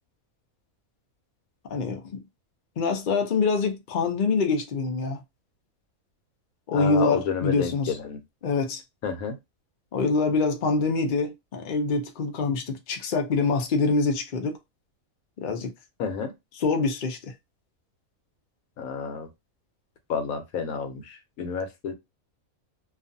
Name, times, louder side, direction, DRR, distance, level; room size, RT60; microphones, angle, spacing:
voice 1, 1.7-2.2 2.8-5.2 6.7-7.9 8.4-8.8 9.9-14.6 15.4-15.7 16.6-17.3, left 4 dB, 55° left, 0.5 m, -25 dB
voice 2, 6.7-8.2 9.0-9.4 16.0-16.3 18.8-19.3 20.1-21.9, left 6 dB, 85° left, 1.1 m, -30 dB
2.5 x 2.4 x 2.6 m
omnidirectional pair, 1.5 m